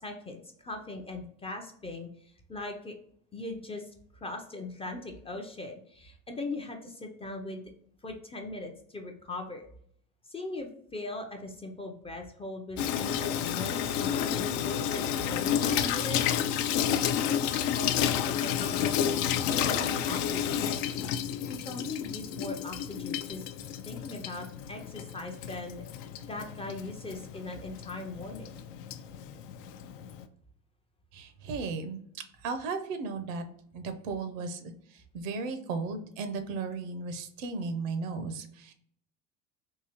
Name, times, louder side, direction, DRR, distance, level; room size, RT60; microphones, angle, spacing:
voice 1, 0.0-2.9 3.3-7.6 8.0-9.7 10.3-15.0 15.3-16.8 17.2-21.0 21.5-23.5 23.7-25.8 26.3-28.5, left 2 dB, 15° left, 3 dB, 0.4 m, -40 dB
Water tap faucet / Sink (filling or washing), 12.8-30.2, left 9 dB, 70° left, 0.5 m, -31 dB
voice 2, 31.1-32.0 32.4-33.5 33.7-38.7, right 4 dB, 75° right, 8 dB, 0.8 m, -35 dB
3.8 x 2.7 x 2.9 m, 0.65 s
supercardioid pair, 100°, 39 cm